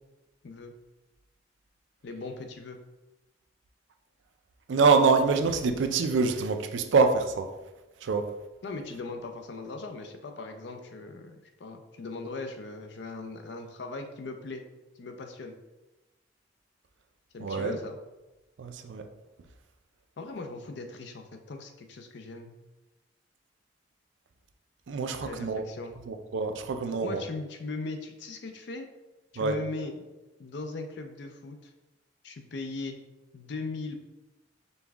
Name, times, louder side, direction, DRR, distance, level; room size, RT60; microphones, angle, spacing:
voice 1, 2.0-2.8 8.6-14.6 15.0-15.6 17.3-18.0 20.2-22.5 25.2-26.0 27.0-28.9 29.3-30.0 30.4-31.7 32.2-33.0 33.3-34.0, left 3 dB, 65° left, 5 dB, 0.5 m, -39 dB
voice 2, 4.7-7.5 8.0-8.3 17.4-17.8 18.6-19.0 24.9-25.6 26.1-27.2 29.4-29.5, right 4 dB, 75° right, 7 dB, 0.4 m, -25 dB
5.3 x 2.3 x 3.5 m, 1.1 s
head